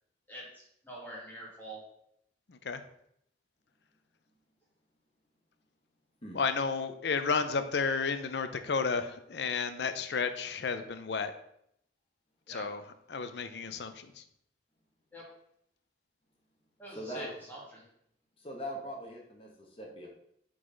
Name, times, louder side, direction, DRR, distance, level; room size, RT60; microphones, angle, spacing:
voice 1, 0.3-1.8 12.5-12.6 15.1-15.2 16.8-17.8, right 1 dB, 10° left, -5 dB, 2.1 m, -45 dB
voice 2, 2.5-2.8 6.3-11.3 12.5-12.8 13.1-14.2, left 5 dB, 70° left, 10 dB, 0.5 m, -32 dB
voice 3, 16.9-17.3 18.4-20.1, equal, 30° left, -1 dB, 1.2 m, -41 dB
7.8 x 3.9 x 3.9 m, 0.73 s
head